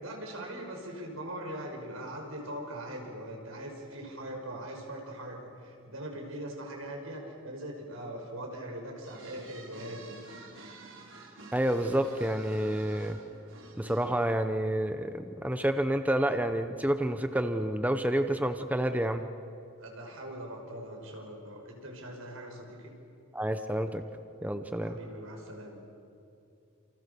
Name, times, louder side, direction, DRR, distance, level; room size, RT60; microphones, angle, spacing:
voice 1, 0.0-10.2 19.8-22.9 24.8-25.8, right 1 dB, 85° right, 1 dB, 5.8 m, -41 dB
sound 1, 9.0-14.3, right 3 dB, 65° right, 4.9 m, -50 dB
voice 2, 11.5-13.2 13.8-19.2 23.3-24.0 24.4-25.0, right 1 dB, 10° right, 8 dB, 0.8 m, -29 dB
29.0 x 28.0 x 7.0 m, 2.6 s
head